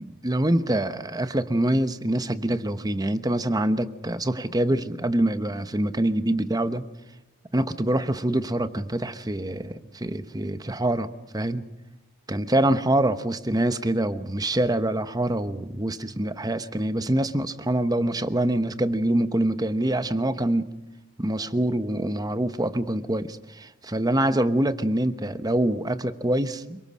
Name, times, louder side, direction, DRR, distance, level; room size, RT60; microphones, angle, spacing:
voice 1, 0.0-6.9 7.5-11.6 12.3-20.7 21.2-26.8, right 1 dB, 20° right, 11 dB, 1.0 m, -25 dB
27.0 x 24.5 x 6.3 m, 0.91 s
head